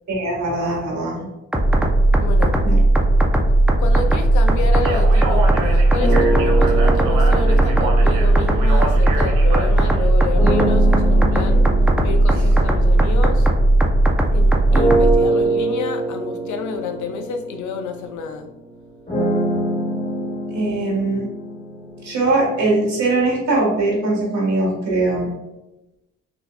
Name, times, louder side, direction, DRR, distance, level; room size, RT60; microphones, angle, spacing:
voice 1, 0.1-1.2 2.6-2.8 20.5-21.3 22.0-25.3, right 2 dB, 65° right, -2 dB, 1.5 m, -21 dB
sound 1, 1.5-15.2, right 1 dB, 5° right, 0.5 m, -16 dB
voice 2, 2.2-2.6 3.8-11.7 12.0-13.5 14.3-18.5, left 5 dB, 75° left, 7 dB, 0.6 m, -29 dB
Speech, 4.7-10.1, right 2 dB, 85° right, 0.7 m, -29 dB
sound 2, 6.0-9.5 10.3-14.1 14.7-22.7, right 2 dB, 25° left, 1.2 m, -25 dB
4.3 x 2.7 x 2.2 m, 0.97 s
cardioid pair, 90°, 30 cm